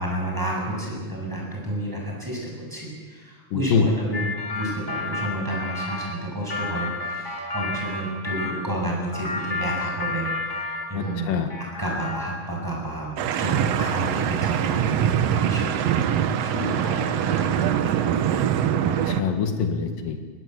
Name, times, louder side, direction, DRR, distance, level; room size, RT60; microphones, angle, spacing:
voice 1, 0.0-4.2 4.5-16.1 16.4-18.0, right 1 dB, 5° right, -2 dB, 7.4 m, -31 dB
voice 2, 3.5-3.9 11.0-11.5 18.8-20.2, left 6 dB, 85° left, 5 dB, 3.4 m, -25 dB
sound 1, 4.1-8.6 9.1-11.2 11.5-12.5, left 3 dB, 25° left, 3.8 m, -31 dB
sound 2, 13.2-19.2, right 9 dB, 65° right, 1.7 m, -23 dB
21.0 x 19.5 x 8.2 m, 1.5 s
omnidirectional pair, 3.8 m